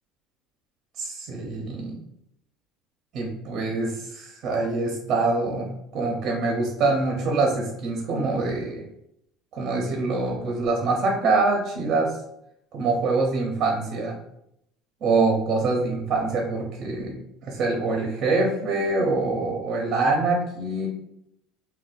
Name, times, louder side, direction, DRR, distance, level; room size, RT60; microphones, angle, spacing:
voice 1, 1.0-2.0 3.1-5.7 5.9-8.8 9.5-12.1 12.7-14.2 15.0-17.1 17.4-20.9, right 3 dB, 40° right, 1 dB, 0.6 m, -24 dB
2.5 x 2.2 x 3.8 m, 0.76 s
cardioid pair, 150°, 0 cm